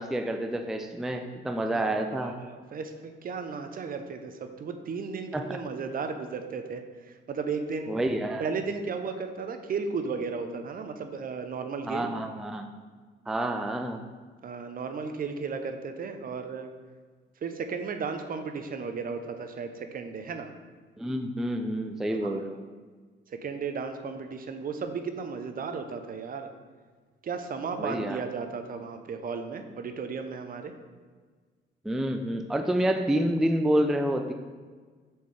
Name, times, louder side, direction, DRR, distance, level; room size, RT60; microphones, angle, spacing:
voice 1, 0.0-2.4 5.3-5.6 7.9-8.4 11.9-12.7 13.3-14.0 21.0-22.6 27.8-28.2 31.8-34.3, right 1 dB, ahead, 5 dB, 0.3 m, -28 dB
voice 2, 1.8-8.0 8.4-12.1 14.4-16.7 17.4-20.5 22.1-22.4 23.3-26.5 27.2-30.7, right 5 dB, 45° right, 7 dB, 0.6 m, -35 dB
6.5 x 4.4 x 3.3 m, 1.5 s
cardioid pair, 90°, 20 cm